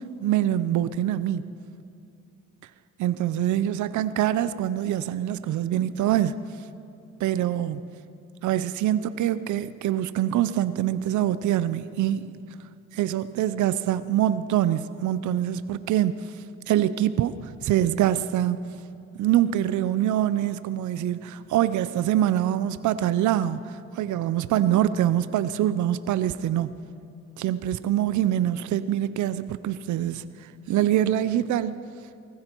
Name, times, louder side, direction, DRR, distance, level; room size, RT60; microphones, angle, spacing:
voice 1, 0.2-1.5 3.0-6.3 7.2-7.8 8.4-12.3 12.9-16.3 16.7-18.6 19.2-26.8 27.4-31.7, right 12 dB, 75° right, 14 dB, 0.6 m, -24 dB
19.0 x 15.5 x 4.5 m, 2.5 s
cardioid pair, 90°, 30 cm